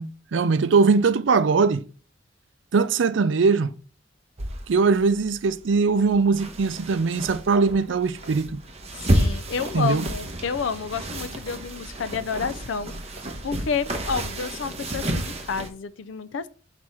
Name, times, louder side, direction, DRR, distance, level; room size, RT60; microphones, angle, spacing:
voice 1, 0.0-1.8 2.7-3.7 4.7-8.6 9.7-10.1, right 4 dB, 75° right, 0.5 m, -21 dB
sound 1, 4.4-15.7, right 1 dB, 35° right, 1.1 m, -30 dB
voice 2, 9.1-16.5, left 6 dB, 80° left, 0.5 m, -30 dB
6.1 x 4.1 x 4.8 m
head